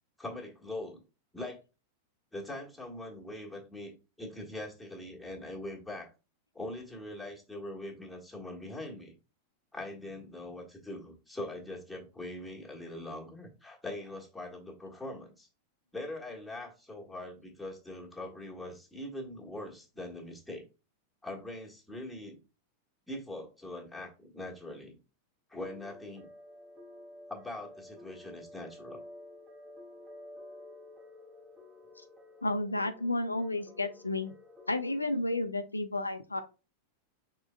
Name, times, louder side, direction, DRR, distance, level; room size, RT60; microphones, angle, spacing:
voice 1, 0.2-1.0 1.3-1.6 2.3-3.9 4.2-6.1 6.5-9.1 9.7-15.5 15.9-20.6 21.2-22.4 23.1-25.0 25.5-26.3 27.3-29.0, left 1 dB, 5° left, -2 dB, 1.5 m, -42 dB
sound 1, 25.6-35.2, left 1 dB, 15° right, 1.2 m, -51 dB
voice 2, 32.4-34.3 34.7-36.4, left 2 dB, 80° left, 10 dB, 0.4 m, -32 dB
5.9 x 3.8 x 2.2 m, 0.31 s
figure-of-eight pair, 90°, 0 cm